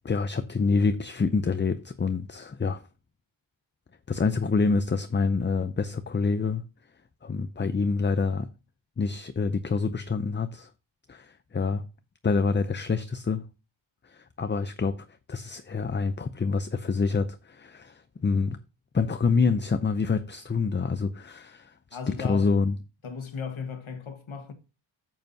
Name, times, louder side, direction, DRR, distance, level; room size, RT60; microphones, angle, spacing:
voice 1, 0.0-2.8 4.1-6.6 7.2-8.5 9.0-10.7 11.1-11.8 12.2-13.4 14.0-18.6 18.9-21.7 22.2-22.8, left 4 dB, 25° left, 0.5 m, -27 dB
voice 2, 21.9-22.5 23.0-24.5, left 6 dB, 85° left, 1.5 m, -36 dB
8.9 x 7.6 x 2.7 m
wide cardioid pair, 90°, 47 cm